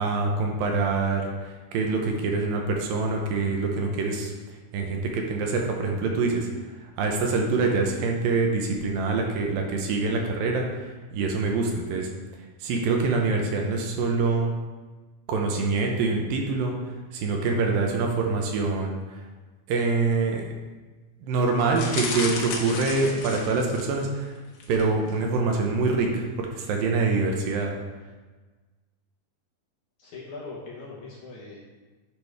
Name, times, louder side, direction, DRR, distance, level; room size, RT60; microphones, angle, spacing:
voice 1, 0.0-4.3 4.7-6.5 7.0-10.6 11.1-12.1 12.6-14.5 15.3-16.7 17.1-19.0 19.7-20.4 21.2-24.4 24.7-27.7, right 3 dB, 75° right, 1 dB, 2.4 m, -25 dB
sound 1, 21.7-24.0 24.6-24.8 25.1-25.2, left 4 dB, 80° left, 2.9 m, -33 dB
voice 2, 30.0-31.6, left 3 dB, 65° left, -4 dB, 2.1 m, -40 dB
10.5 x 5.2 x 3.4 m, 1.3 s
omnidirectional pair, 4.4 m